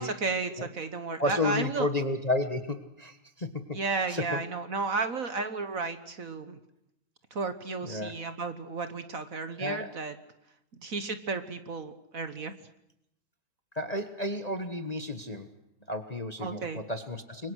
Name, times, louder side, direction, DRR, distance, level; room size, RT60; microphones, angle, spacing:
voice 1, 0.0-1.9 3.7-6.6 7.3-10.1 10.8-12.5 16.4-16.8, right 4 dB, 45° right, 10 dB, 1.5 m, -33 dB
voice 2, 1.2-3.8 4.1-4.4 7.8-8.1 9.6-9.9 13.7-15.5 15.9-17.5, left 2 dB, 25° left, 8 dB, 1.2 m, -32 dB
29.0 x 23.0 x 6.4 m, 0.82 s
omnidirectional pair, 2.1 m